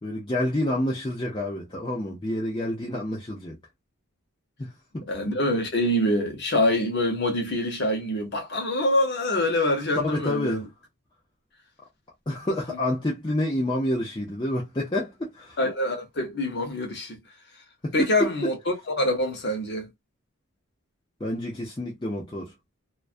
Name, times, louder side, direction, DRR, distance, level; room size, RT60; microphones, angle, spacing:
voice 1, 0.0-3.6 4.6-5.1 10.0-10.6 12.3-15.6 17.8-18.3 21.2-22.5, left 1 dB, 20° left, 0.5 m, -28 dB
voice 2, 5.1-10.7 12.7-12.8 15.6-17.2 17.9-19.9, left 1 dB, 50° left, 0.8 m, -25 dB
2.2 x 2.2 x 2.4 m
head